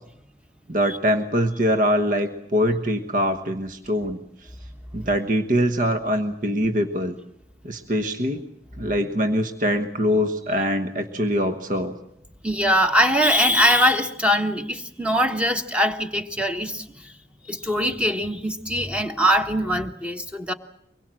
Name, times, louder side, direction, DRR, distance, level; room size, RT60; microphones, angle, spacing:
voice 1, 0.7-4.5 4.9-7.2 7.6-8.4 8.8-11.9, equal, 50° right, 7 dB, 1.2 m, -23 dB
voice 2, 12.4-17.2 17.5-20.5, equal, 5° right, 6 dB, 1.3 m, -22 dB
24.0 x 21.5 x 7.6 m, 0.79 s
head